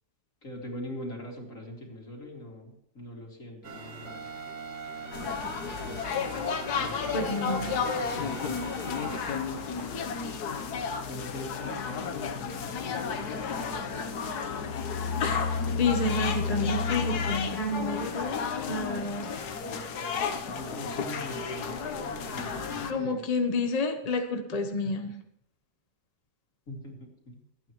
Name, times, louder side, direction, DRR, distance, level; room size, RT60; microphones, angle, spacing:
voice 1, 0.4-4.3 6.8-9.3 11.1-14.1 20.5-23.2 26.7-27.4, left 1 dB, 50° left, -1 dB, 3.2 m, -42 dB
sound 1, 3.6-9.8, right 4 dB, 50° right, 1.7 m, -42 dB
sound 2, 5.1-22.9, left 5 dB, 70° left, 1.5 m, -32 dB
voice 2, 7.1-7.8 15.8-18.4 18.7-19.4 22.8-25.1, left 3 dB, 30° left, 5 dB, 0.8 m, -29 dB
26.0 x 9.0 x 3.1 m, 0.71 s
omnidirectional pair, 1.8 m